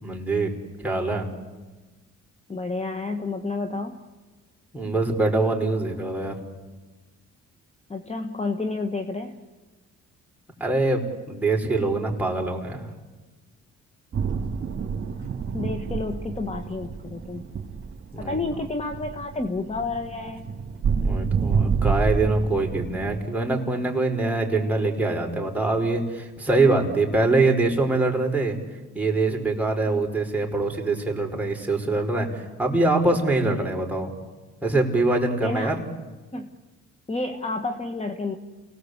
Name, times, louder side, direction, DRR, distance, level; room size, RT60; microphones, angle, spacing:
voice 1, 0.0-0.5 0.8-1.3 4.7-6.3 10.6-12.9 18.1-18.4 21.0-28.6 28.9-34.1 34.6-35.8, right 2 dB, 5° right, 0 dB, 5.0 m, -24 dB
voice 2, 2.5-4.0 7.9-9.4 15.2-17.4 18.2-20.5 29.9-30.0 33.4-33.7 35.4-35.8 36.3-36.5 37.1-38.4, left 3 dB, 20° left, 6 dB, 1.6 m, -30 dB
sound 1, 14.1-23.2, right 5 dB, 45° right, 3.3 m, -28 dB
29.5 x 18.5 x 8.2 m, 1.2 s
cardioid pair, 90°, 30 cm